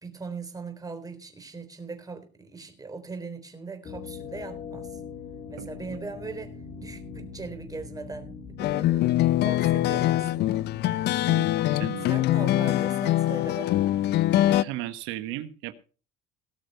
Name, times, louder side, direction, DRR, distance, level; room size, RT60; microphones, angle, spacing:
voice 1, 0.0-5.0 5.5-8.3 8.6-10.7 12.0-13.9, right 4 dB, 20° right, 3.7 m, -40 dB
sound 1, 3.8-12.5, left 5 dB, 35° left, 2.9 m, -43 dB
voice 2, 5.6-6.0 11.3-12.1 14.4-15.7, right 15 dB, 75° right, 1.1 m, -37 dB
sound 2, 8.6-14.6, left 14 dB, 55° left, 0.6 m, -23 dB
18.5 x 6.6 x 5.5 m
supercardioid pair, 100°, 20 cm